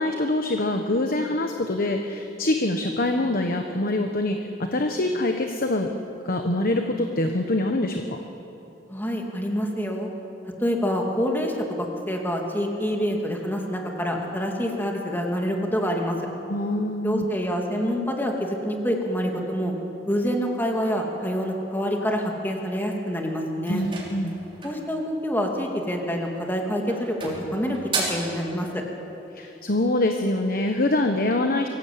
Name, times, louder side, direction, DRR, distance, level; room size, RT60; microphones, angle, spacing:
voice 1, 0.0-5.9 6.2-8.2 16.5-17.2 23.7-24.4 29.3-31.7, left 1 dB, 50° left, 5 dB, 1.2 m, -25 dB
voice 2, 8.9-10.1 10.6-16.2 17.0-19.7 20.1-23.9 24.6-27.8 28.1-28.8, equal, 10° left, 1 dB, 2.5 m, -26 dB
sound 1, 23.7-24.9 26.1-26.5 26.9-28.3, right 3 dB, 30° right, 5.7 m, -32 dB
23.5 x 15.5 x 8.6 m, 2.9 s
head